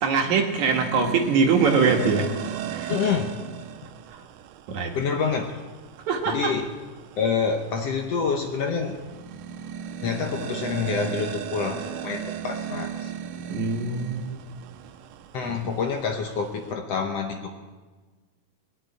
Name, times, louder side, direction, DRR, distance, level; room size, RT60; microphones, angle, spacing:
voice 1, 0.0-2.3 2.7-2.9 4.1-4.2 4.7-4.9 6.1-6.5 13.5-14.4, right 5 dB, 65° right, 2 dB, 2.8 m, -23 dB
sound 1, 0.6-16.7, right 10 dB, 85° right, 2.3 m, -37 dB
voice 2, 2.9-3.3 5.0-5.6 6.3-6.7 7.2-8.9 10.0-13.1 15.3-17.6, left 5 dB, 65° left, 4 dB, 1.8 m, -27 dB
21.0 x 7.1 x 9.6 m, 1.3 s
omnidirectional pair, 3.7 m